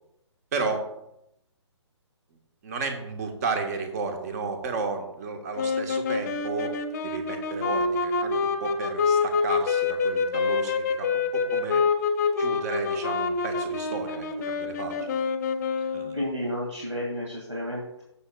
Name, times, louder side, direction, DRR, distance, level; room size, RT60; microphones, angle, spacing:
voice 1, 0.5-0.9 2.6-6.7 7.0-11.8 12.4-15.2 15.9-16.2, right 4 dB, 35° right, 4 dB, 1.6 m, -33 dB
sound 1, 5.6-16.3, left 4 dB, 35° left, 0.9 m, -26 dB
voice 2, 16.1-18.0, equal, 85° right, -3 dB, 2.5 m, -31 dB
13.5 x 7.1 x 2.4 m, 0.82 s
figure-of-eight pair, 135°, 16 cm